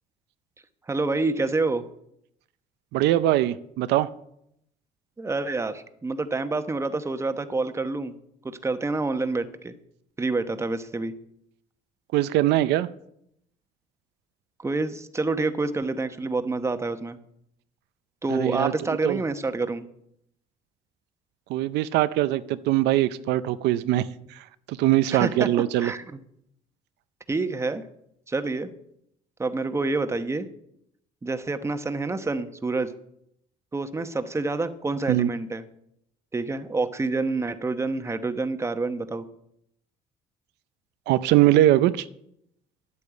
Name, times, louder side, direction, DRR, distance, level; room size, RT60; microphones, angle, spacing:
voice 1, 0.9-1.8 5.2-8.2 8.4-9.7 10.2-11.1 14.6-17.2 18.2-19.9 25.1-25.5 25.8-26.2 27.3-27.8 28.3-28.7 29.4-30.5 31.2-32.9 33.7-35.6 36.3-39.2, right 3 dB, 15° right, 10 dB, 1.0 m, -27 dB
voice 2, 2.9-4.1 12.1-12.9 18.3-18.7 19.0-19.2 21.5-24.1 24.7-25.9 35.1-35.3 41.1-42.1, right 14 dB, 85° right, 13 dB, 0.6 m, -21 dB
10.5 x 8.5 x 8.1 m, 0.75 s
cardioid pair, 110°, 17 cm